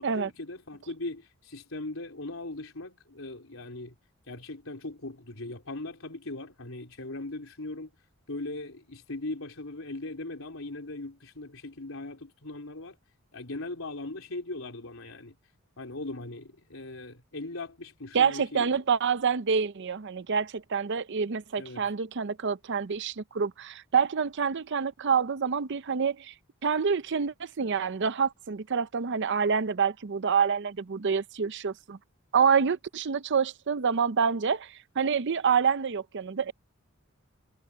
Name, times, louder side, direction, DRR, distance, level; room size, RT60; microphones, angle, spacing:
voice 1, 0.0-4.0 4.3-7.9 8.3-13.0 13.3-15.3 15.8-18.8 21.6-21.9, left 2 dB, 65° left, 4.2 m, -39 dB
voice 2, 18.1-26.3 26.6-32.0 32.3-36.5, right 6 dB, 55° right, 0.6 m, -27 dB
head